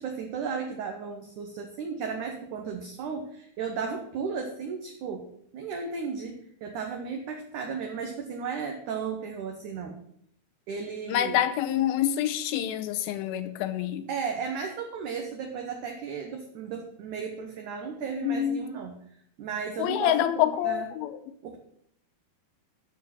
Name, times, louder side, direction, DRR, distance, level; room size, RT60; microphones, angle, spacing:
voice 1, 0.0-5.3 5.5-10.0 10.7-11.4 14.1-19.0 19.4-20.9 21.4-21.6, right 5 dB, 70° right, 2 dB, 2.0 m, -34 dB
voice 2, 11.1-14.1 18.2-18.6 19.8-21.2, left 11 dB, 85° left, 10 dB, 2.3 m, -27 dB
13.5 x 4.6 x 7.4 m, 0.69 s
omnidirectional pair, 4.7 m